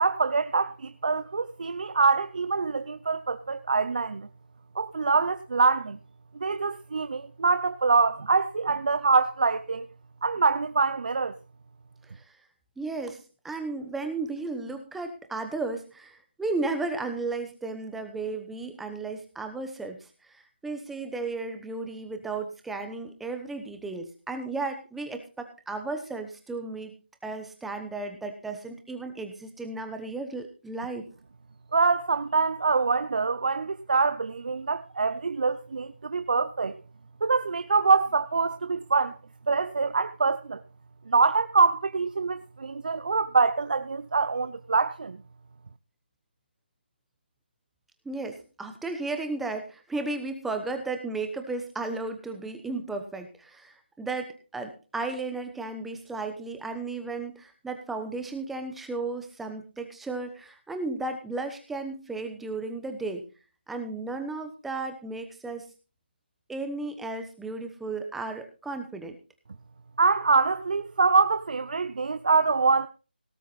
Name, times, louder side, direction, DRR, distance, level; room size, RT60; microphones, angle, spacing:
voice 1, 0.0-4.3 4.8-6.0 6.4-9.9 10.2-11.3 31.7-36.8 37.2-39.2 39.5-40.6 41.1-45.2 70.0-72.9, right 4 dB, 50° right, 0.7 m, -24 dB
voice 2, 12.8-26.9 27.2-31.1 48.0-63.3 63.7-65.7 66.5-69.2, right 3 dB, ahead, 1.0 m, -34 dB
18.0 x 9.1 x 4.1 m
figure-of-eight pair, 170°, 6 cm